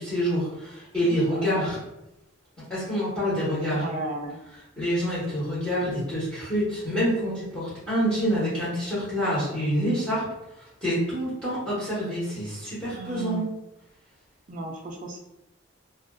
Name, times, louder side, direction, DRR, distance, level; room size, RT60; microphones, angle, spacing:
voice 1, 0.0-1.8 2.7-3.9 4.8-10.3 10.6-13.5, equal, 5° left, -12 dB, 1.0 m, -27 dB
voice 2, 1.3-1.7 3.7-4.4 12.9-13.4 14.5-15.2, right 2 dB, 35° right, 2 dB, 0.3 m, -34 dB
2.4 x 2.2 x 2.2 m, 0.90 s
head